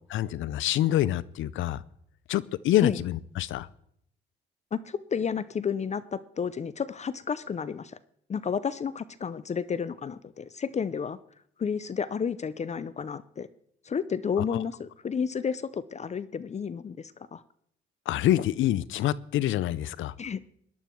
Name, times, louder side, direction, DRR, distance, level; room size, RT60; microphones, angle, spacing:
voice 1, 0.1-1.8 2.3-3.7 14.4-14.6 18.1-20.1, left 13 dB, 80° left, 20 dB, 0.6 m, -26 dB
voice 2, 4.7-8.0 8.3-11.2 11.6-13.5 13.9-17.4 20.2-20.4, left 6 dB, 35° left, 17 dB, 0.6 m, -31 dB
18.0 x 11.0 x 4.5 m, 0.70 s
cardioid pair, 90°, 20 cm